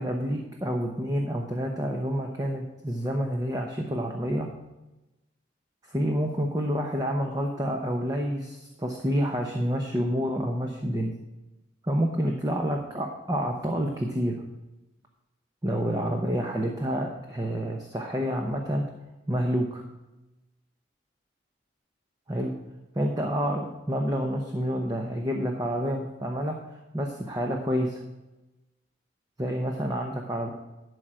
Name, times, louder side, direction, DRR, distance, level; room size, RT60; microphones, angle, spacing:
voice 1, 0.0-4.5 5.9-11.1 11.8-14.4 15.6-18.9 19.3-19.8 22.3-22.5 22.9-26.6 26.9-28.0 29.4-30.5, equal, 20° right, 1 dB, 0.9 m, -28 dB
12.0 x 5.0 x 6.0 m, 1.0 s
head